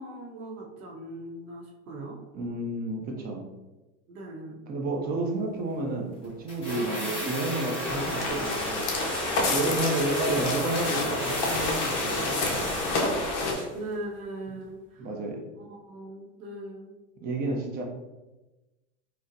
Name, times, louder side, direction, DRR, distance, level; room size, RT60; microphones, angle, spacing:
voice 1, 0.0-2.2 4.1-4.6 6.8-7.1 7.7-7.9 13.7-15.1 15.5-16.9, right 1 dB, 80° right, -2 dB, 0.8 m, -40 dB
voice 2, 2.3-3.5 4.7-9.1 9.5-13.1 15.0-15.4 17.2-17.8, right 2 dB, 25° right, 1 dB, 0.4 m, -31 dB
sound 1, 6.5-13.8 14.0-14.1, equal, 10° left, 1.2 m, -33 dB
sound 2, 7.8-13.5, left 2 dB, 40° left, 0.7 m, -29 dB
4.0 x 2.1 x 2.6 m, 1.1 s
hypercardioid pair, 115°, 42 cm